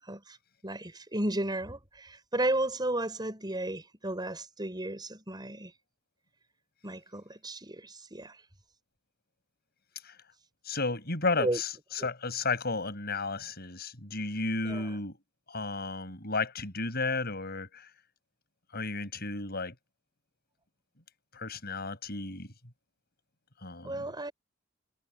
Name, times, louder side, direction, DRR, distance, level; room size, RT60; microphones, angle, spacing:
voice 1, 0.0-0.4 0.6-5.7 6.8-8.4 11.4-11.6 12.0-12.1 14.6-15.0 23.8-24.3, right 1 dB, 20° right, 6.1 m, -34 dB
voice 2, 10.7-11.7 12.0-15.1 15.5-17.8 18.7-19.7 21.3-22.5 23.6-24.0, left 3 dB, 55° left, 7.6 m, -33 dB
head